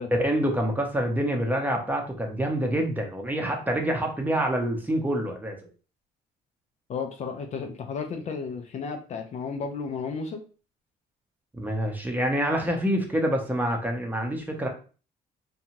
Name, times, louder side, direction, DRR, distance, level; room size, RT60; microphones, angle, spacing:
voice 1, 0.2-5.6 11.6-14.7, right 1 dB, 10° right, 2 dB, 0.6 m, -26 dB
voice 2, 6.9-10.4, left 5 dB, 45° left, 5 dB, 0.4 m, -33 dB
2.7 x 2.3 x 2.9 m, 0.38 s
cardioid pair, 110°, 17 cm